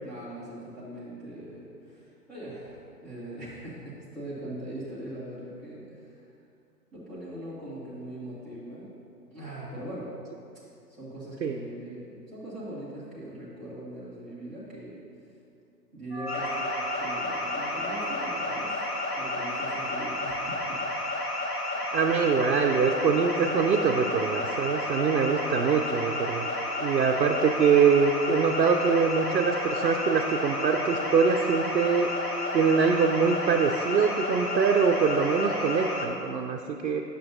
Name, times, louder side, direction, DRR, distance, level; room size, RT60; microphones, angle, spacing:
voice 1, 0.0-6.3 6.9-8.9 9.3-10.1 10.9-15.1 15.9-16.7 17.0-18.8 19.2-20.8, right 1 dB, ahead, -11 dB, 0.7 m, -41 dB
sound 1, 16.1-25.2, equal, 25° left, 1.7 m, -43 dB
sound 2, 16.3-36.1, left 1 dB, 60° left, 1.2 m, -31 dB
voice 2, 21.9-26.5 26.8-32.1 32.5-37.0, right 5 dB, 85° right, 3 dB, 0.6 m, -24 dB
8.7 x 6.7 x 2.6 m, 2.6 s
figure-of-eight pair, 130°, 49 cm